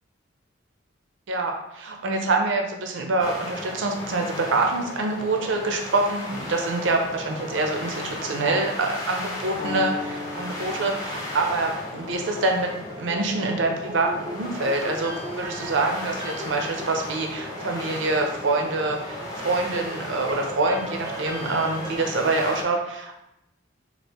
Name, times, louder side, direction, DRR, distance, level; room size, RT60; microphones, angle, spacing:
voice 1, 1.3-12.7 13.0-23.2, right 2 dB, 80° right, 3 dB, 0.5 m, -26 dB
sound 1, 3.2-22.6, left 1 dB, 20° left, 0.8 m, -35 dB
Piano, 9.6-17.5, left 3 dB, 65° left, 0.7 m, -41 dB
sound 2, 12.5-22.0, right 1 dB, 20° right, 0.4 m, -40 dB
4.2 x 2.5 x 3.4 m, 0.85 s
head